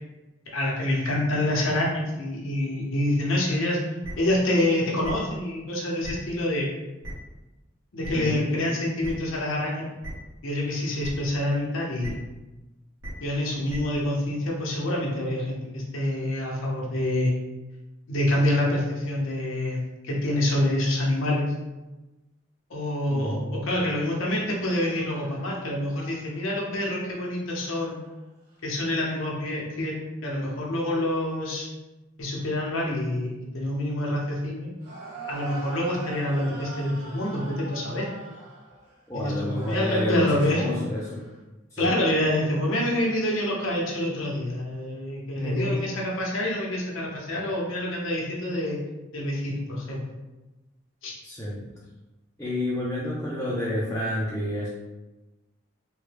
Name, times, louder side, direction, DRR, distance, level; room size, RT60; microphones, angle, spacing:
voice 1, 0.5-3.8 4.2-6.7 7.9-9.9 10.4-12.2 13.2-17.3 18.1-21.5 22.7-28.0 28.6-31.7 32.2-34.7 35.3-38.1 39.1-40.7 41.8-48.8 49.1-50.0 51.0-51.1, left 1 dB, 80° left, -2 dB, 0.8 m, -27 dB
sound 1, 4.0-4.1 5.0-5.1 6.0-6.1 7.0-7.1 8.0-8.1 9.0-9.1 10.0-10.1 11.0-11.1 12.0-12.1 13.0-13.1 13.7-13.8, right 1 dB, 75° right, 1.1 m, -36 dB
voice 2, 8.1-8.5 23.1-23.6 39.1-40.2 40.5-41.2 41.7-41.9 45.4-45.9 51.2-51.7 52.4-54.7, left 1 dB, 10° left, -7 dB, 0.4 m, -29 dB
sound 2, 24.7-26.7 27.5-28.2 28.5-28.6 34.8-39.1 39.5-41.4, right 3 dB, 50° right, 1.1 m, -43 dB
3.2 x 2.2 x 3.3 m, 1.1 s
head